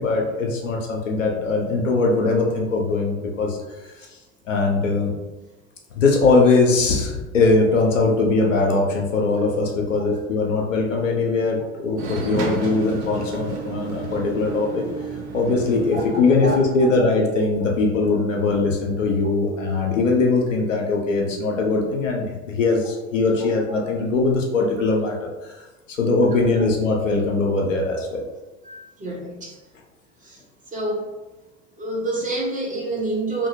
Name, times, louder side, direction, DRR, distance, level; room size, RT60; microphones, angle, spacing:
voice 1, 0.0-3.6 4.0-4.1 4.5-5.1 5.9-14.8 15.3-25.6 25.9-28.2, left 3 dB, 80° left, -1 dB, 0.6 m, -21 dB
sound 1, 12.0-17.0, right 4 dB, 65° right, 0.7 m, -32 dB
voice 2, 28.6-29.6 30.2-30.4 30.7-31.1 31.8-33.5, right 2 dB, 20° right, -3 dB, 0.7 m, -28 dB
2.7 x 2.6 x 2.6 m, 1.1 s
figure-of-eight pair, 70°, 38 cm